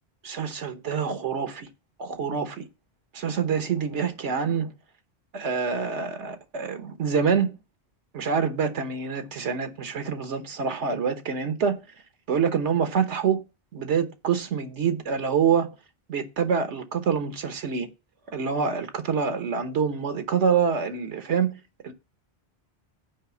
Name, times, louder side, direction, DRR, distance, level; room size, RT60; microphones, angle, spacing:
voice 1, 0.2-1.7 2.0-2.7 3.1-4.7 5.3-7.5 8.1-11.8 12.3-13.4 13.7-15.7 16.1-17.9 18.3-21.9, right 6 dB, 85° right, 1.4 m, -26 dB
7.2 x 4.9 x 7.0 m
omnidirectional pair, 1.1 m